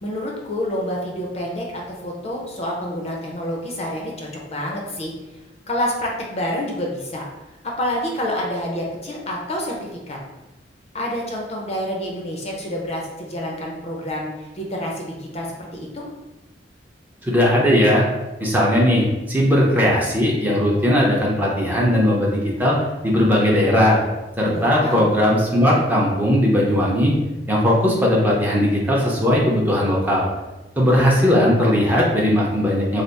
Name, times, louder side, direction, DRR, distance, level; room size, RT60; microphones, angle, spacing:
voice 1, 0.0-5.1 5.7-7.2 7.6-9.8 10.1-10.2 10.9-15.5 15.7-16.1 24.4-25.1, left 1 dB, 35° left, -2 dB, 0.6 m, -28 dB
voice 2, 17.2-18.0 18.4-22.8 23.0-24.0 24.4-27.1 27.5-30.3 30.8-33.0, equal, 10° right, -4 dB, 0.6 m, -18 dB
3.3 x 2.0 x 4.0 m, 1.0 s
head